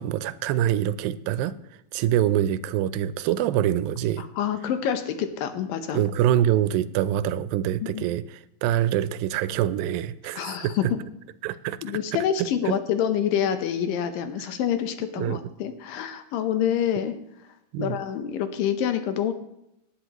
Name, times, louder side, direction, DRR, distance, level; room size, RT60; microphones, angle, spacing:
voice 1, 0.0-1.6 1.9-4.3 5.9-10.9 11.4-11.8 12.1-12.8 15.2-15.4 17.7-18.0, right 11 dB, 90° right, 15 dB, 2.4 m, -25 dB
voice 2, 4.2-6.0 7.8-8.0 10.4-10.8 11.8-17.1 17.8-19.3, left 9 dB, 80° left, 9 dB, 2.6 m, -27 dB
18.5 x 10.0 x 3.0 m, 0.82 s
omnidirectional pair, 4.0 m